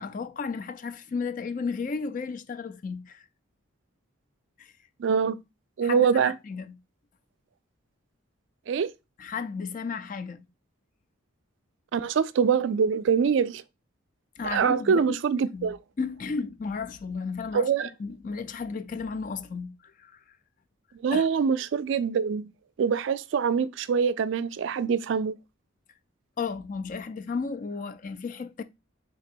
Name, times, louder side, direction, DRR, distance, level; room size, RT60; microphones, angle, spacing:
voice 1, 0.0-3.3 4.6-4.7 5.8-6.8 9.2-10.4 14.4-15.2 15.5-17.7 18.0-20.2 21.1-21.3 26.4-28.6, left 4 dB, 40° left, 0.3 m, -34 dB
voice 2, 5.0-5.4 5.8-6.3 8.7-8.9 11.9-13.6 14.4-15.8 17.5-17.9 21.0-22.5 22.8-25.3, right 6 dB, 65° right, 0.3 m, -24 dB
3.3 x 2.9 x 4.4 m
head